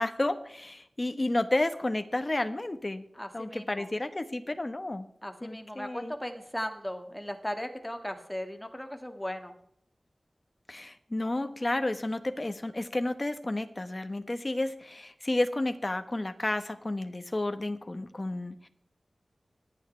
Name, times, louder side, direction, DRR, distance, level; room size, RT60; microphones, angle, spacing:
voice 1, 0.0-3.0 3.3-5.1 5.4-6.1 10.7-18.7, left 2 dB, 35° left, 8 dB, 1.2 m, -31 dB
voice 2, 3.1-3.9 5.2-9.5, equal, 10° left, 5 dB, 1.9 m, -37 dB
25.5 x 9.1 x 3.3 m, 0.74 s
wide cardioid pair, 55°, 0 cm